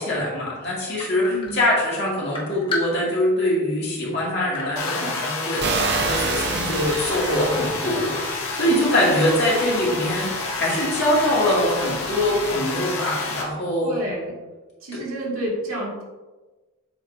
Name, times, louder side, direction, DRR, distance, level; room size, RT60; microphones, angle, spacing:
voice 1, 0.0-13.9 14.9-15.0, left 1 dB, 50° left, -5 dB, 2.1 m, -23 dB
sound 1, 1.0-1.9 2.3-3.4 3.8-3.9 4.5-5.5 5.8-6.4, left 3 dB, 25° left, 0.9 m, -32 dB
voice 2, 1.3-1.6 6.5-6.9 13.8-14.4 14.8-16.0, right 1 dB, 75° right, -4 dB, 1.9 m, -31 dB
sound 2, 4.8-13.4, left 3 dB, 80° left, 1.2 m, -29 dB
sound 3, 5.6-12.5, right 5 dB, 50° right, 0.5 m, -31 dB
7.8 x 5.3 x 2.5 m, 1.2 s
head